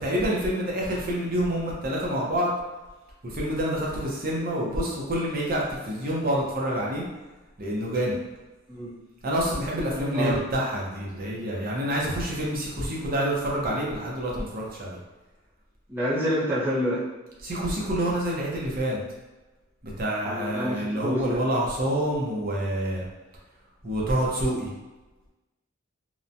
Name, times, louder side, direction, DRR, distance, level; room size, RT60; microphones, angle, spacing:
voice 1, 0.0-2.5 3.2-7.0 7.6-8.1 9.2-15.0 17.4-19.0 19.8-23.0 23.8-24.7, equal, 45° right, -3 dB, 0.7 m, -27 dB
voice 2, 15.9-17.0 20.2-21.4, equal, 10° right, -10 dB, 0.6 m, -27 dB
3.0 x 2.1 x 2.5 m, 1.1 s
head